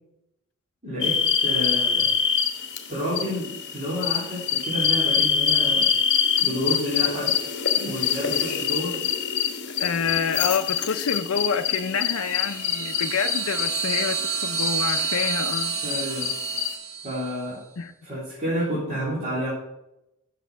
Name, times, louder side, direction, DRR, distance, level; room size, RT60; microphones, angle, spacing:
voice 1, 0.8-2.1 2.9-5.9 6.4-9.0 15.8-16.3 17.0-17.6 18.0-19.5, equal, 30° right, -10 dB, 3.5 m, -30 dB
sound 1, 1.0-16.8, left 8 dB, 55° left, 1.1 m, -25 dB
voice 2, 9.8-15.8 17.8-17.9, left 6 dB, 75° left, 5 dB, 0.5 m, -27 dB
sound 2, 12.0-17.4, right 7 dB, 65° right, 1.1 m, -30 dB
8.2 x 6.6 x 6.0 m, 0.88 s
head